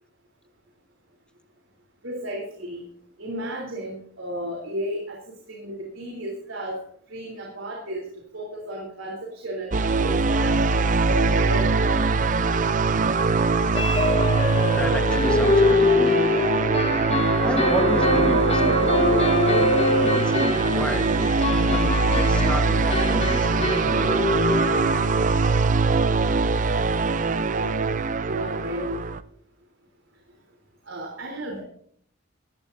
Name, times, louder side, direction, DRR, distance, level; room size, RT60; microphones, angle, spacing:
voice 1, 2.0-2.8 3.2-5.2 5.5-6.8 7.1-8.1 8.3-12.0 27.5-27.9 28.3-29.0 30.9-31.6, right 1 dB, 85° right, -1 dB, 3.5 m, -33 dB
sound 1, 9.7-29.2, right 4 dB, 40° right, 0.6 m, -22 dB
sound 2, 9.8-9.9 10.3-10.4 10.7-10.8 13.8-25.2, left 2 dB, 30° left, 1.4 m, -24 dB
voice 2, 14.7-16.3 17.4-24.4, equal, 5° left, 6 dB, 1.2 m, -33 dB
18.5 x 16.0 x 2.7 m, 0.63 s
head